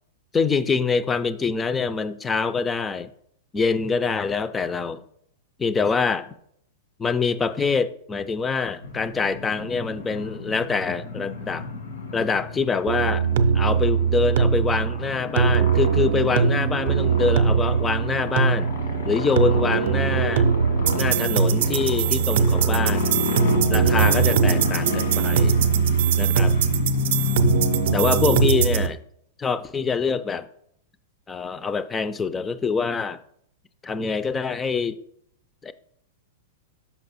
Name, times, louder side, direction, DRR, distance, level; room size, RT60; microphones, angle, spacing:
voice 1, 0.3-3.1 3.5-5.0 5.6-6.3 7.0-11.7 12.1-13.3 13.5-18.7 19.1-20.5 21.0-23.2 23.7-25.6 26.2-26.6 27.9-29.0 29.4-30.5 31.3-33.2 33.8-35.0 35.6-35.7, left 5 dB, 15° left, 0.3 m, -25 dB
sound 1, 8.8-28.5, left 4 dB, 90° left, 1.3 m, -30 dB
sound 2, 12.9-28.9, right 7 dB, 65° right, 0.5 m, -21 dB
5.9 x 5.3 x 4.0 m
supercardioid pair, 150°, 0 cm